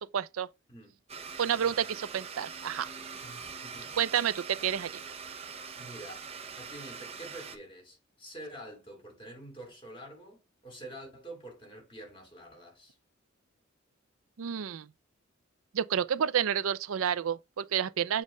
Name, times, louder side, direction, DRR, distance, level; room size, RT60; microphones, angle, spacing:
voice 1, 0.1-0.5 1.4-2.9 4.0-5.0 14.4-14.9 15.7-18.2, right 8 dB, 85° right, 0.4 m, -30 dB
voice 2, 0.7-1.0 3.2-3.9 5.8-6.3 6.6-13.0, right 1 dB, 25° left, 2.6 m, -47 dB
Domestic sounds home sounds, 1.1-7.6, right 5 dB, 30° right, 0.7 m, -43 dB
7.2 x 2.5 x 5.3 m
head